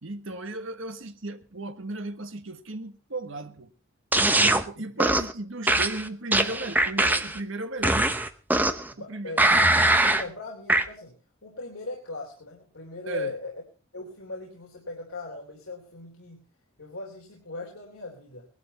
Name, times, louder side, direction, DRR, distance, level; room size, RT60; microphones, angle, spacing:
voice 1, 0.0-3.7 4.4-8.1 9.0-9.4 13.1-13.3, right 2 dB, 70° right, 1.4 m, -35 dB
sound 1, 4.1-4.6 5.0-5.3 5.7-7.4 7.8-8.9 9.4-10.2 10.7-10.8, right 2 dB, 10° right, 0.8 m, -21 dB
voice 2, 8.9-9.7 10.1-11.1 11.4-13.5 13.9-16.4 16.8-18.5, left 3 dB, 85° left, 3.6 m, -39 dB
20.0 x 12.0 x 4.3 m
head